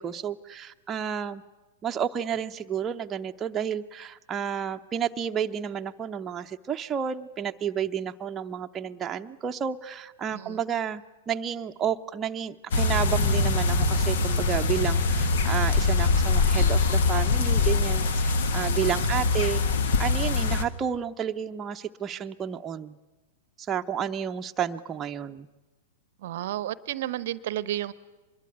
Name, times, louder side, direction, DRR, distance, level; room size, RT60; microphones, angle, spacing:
voice 1, 0.0-1.4 1.8-19.6 20.0-23.0 23.6-25.5, right 8 dB, 20° right, 5 dB, 0.8 m, -31 dB
sound 1, 12.7-20.6, left 3 dB, 60° left, 1.6 m, -23 dB
voice 2, 18.7-19.1 26.2-27.9, right 13 dB, 55° right, 19 dB, 0.8 m, -32 dB
24.5 x 21.5 x 9.2 m, 1.1 s
figure-of-eight pair, 100°, 0 cm